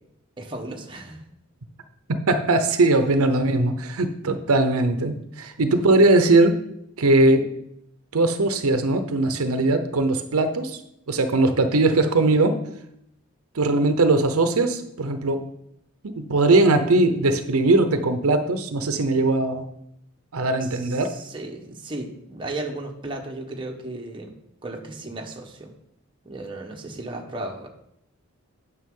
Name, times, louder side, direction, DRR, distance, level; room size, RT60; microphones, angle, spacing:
voice 1, 0.4-1.2 20.6-24.3 24.6-25.7 26.2-27.7, right 2 dB, 25° right, 0 dB, 1.0 m, -35 dB
voice 2, 2.1-6.6 7.0-7.5 8.1-10.8 11.1-12.6 13.5-15.4 16.0-19.7 20.3-21.2, right 2 dB, 85° right, 8 dB, 0.7 m, -20 dB
9.2 x 6.0 x 3.7 m, 0.76 s
head